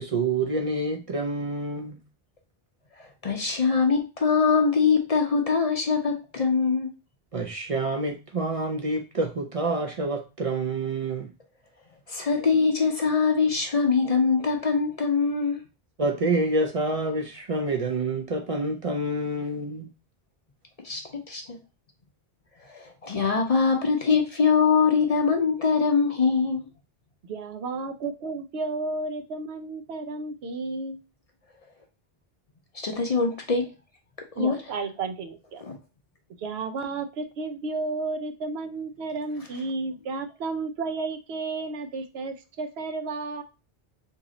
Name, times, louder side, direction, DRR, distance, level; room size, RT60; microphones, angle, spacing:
voice 1, 0.0-2.0 7.3-11.3 16.0-19.9, right 2 dB, 50° right, 0.4 m, -27 dB
voice 2, 3.0-6.9 12.1-15.6 20.8-21.6 22.6-26.7 32.7-33.7 34.3-34.6 35.6-35.8, left 5 dB, 45° left, 0.6 m, -23 dB
voice 3, 27.3-31.0 34.4-35.6 36.4-43.4, right 3 dB, 85° right, 0.9 m, -32 dB
3.0 x 2.8 x 3.7 m
omnidirectional pair, 1.0 m